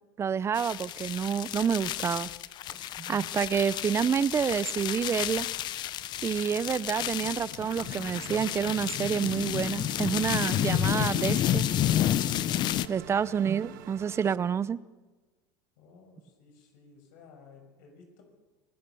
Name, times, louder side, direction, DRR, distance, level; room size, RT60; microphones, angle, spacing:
voice 1, 0.2-2.3 3.1-5.5 6.2-11.7 12.9-14.8, right 7 dB, 25° right, 20 dB, 0.6 m, -28 dB
sound 1, 0.5-12.9, left 12 dB, 45° left, 0.8 m, -30 dB
voice 2, 2.6-2.9 15.8-18.2, left 4 dB, 70° left, 3 dB, 6.3 m, -56 dB
sound 2, 7.5-14.4, right 13 dB, 80° right, 1.0 m, -47 dB
26.0 x 17.0 x 7.0 m, 1.2 s
supercardioid pair, 110°, 10 cm